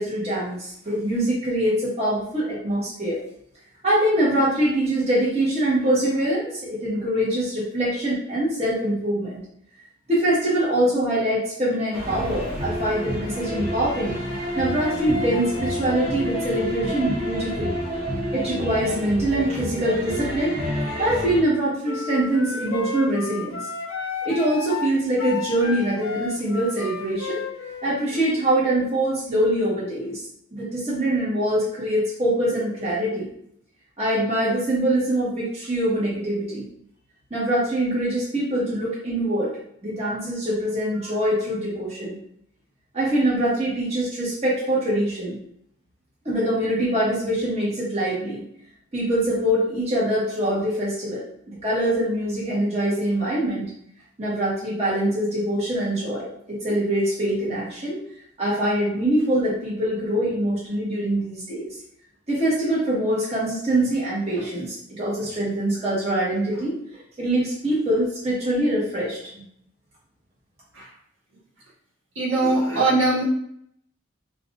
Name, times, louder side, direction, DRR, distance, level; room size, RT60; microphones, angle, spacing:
voice 1, 0.0-3.2 3.8-9.4 10.1-14.2 14.6-17.8 18.3-23.6 24.2-27.4 27.8-30.2 30.5-33.3 34.0-36.6 37.3-39.5 39.8-42.2 42.9-45.4 46.2-48.4 48.9-53.7 54.2-58.0 58.4-61.7 62.3-66.8 67.2-69.4, right 1 dB, 30° right, -8 dB, 1.3 m, -24 dB
sound 1, 11.9-21.4, equal, 50° right, 1.0 m, -29 dB
sound 2, 21.8-28.4, left 5 dB, 80° left, 0.5 m, -32 dB
voice 2, 72.1-73.2, right 2 dB, 65° right, -7 dB, 1.6 m, -21 dB
5.7 x 2.5 x 2.5 m, 0.68 s
head